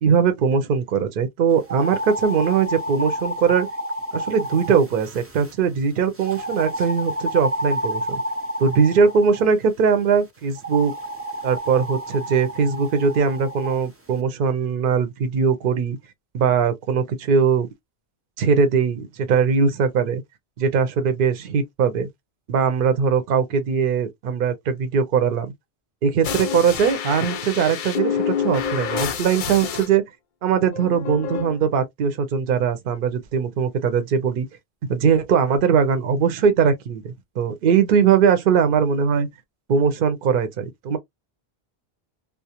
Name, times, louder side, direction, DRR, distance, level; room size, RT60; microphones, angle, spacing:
voice 1, 0.0-3.7 4.1-8.0 8.6-10.9 11.4-16.0 16.3-17.7 18.4-20.2 20.6-22.1 22.5-25.5 26.0-30.0 30.4-34.5 34.9-39.3 39.7-41.0, right 6 dB, 60° right, 0.7 m, -20 dB
sound 1, 1.6-5.5 6.2-9.5 10.6-13.8, equal, 25° right, 0.3 m, -30 dB
sound 2, 26.2-29.9 30.7-31.6, left 7 dB, 60° left, 0.6 m, -27 dB
2.3 x 2.1 x 2.7 m
omnidirectional pair, 1.1 m